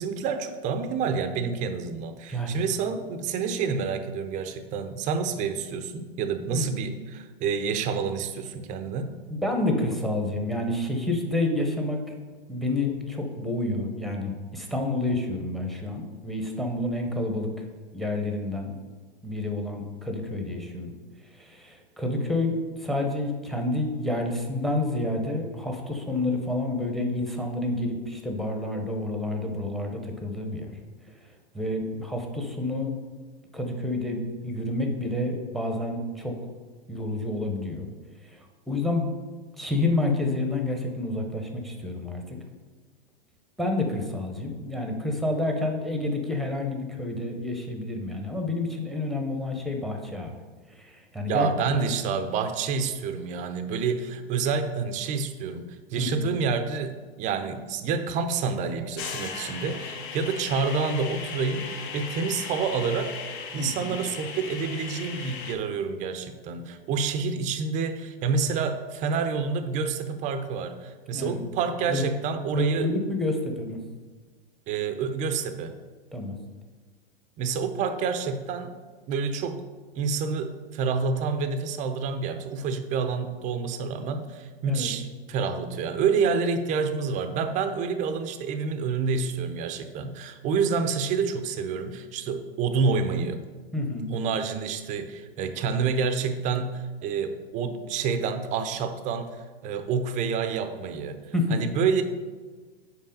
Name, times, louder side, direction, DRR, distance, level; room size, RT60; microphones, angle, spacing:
voice 1, 0.0-9.1 51.3-72.9 74.7-75.8 77.4-78.8 79.1-79.6 79.9-93.4 94.1-101.2 101.5-102.0, right 5 dB, 25° right, 9 dB, 0.5 m, -28 dB
voice 2, 2.3-2.6 6.5-6.7 9.3-12.0 12.5-17.6 17.9-18.8 19.2-20.9 21.4-22.5 22.8-30.7 31.5-32.9 33.5-36.4 36.9-37.9 38.2-38.4 38.7-39.1 39.6-42.4 43.6-50.3 50.8-51.5 55.9-56.3 63.6-63.9 71.1-71.4 71.9-72.1 72.5-73.8 76.1-76.3 84.7-84.9 93.7-94.1 101.3-101.6, left 2 dB, ahead, 3 dB, 0.8 m, -29 dB
sound 1, 59.0-65.5, left 6 dB, 50° left, 0.9 m, -37 dB
5.5 x 4.6 x 5.2 m, 1.4 s
hypercardioid pair, 110°, 31 cm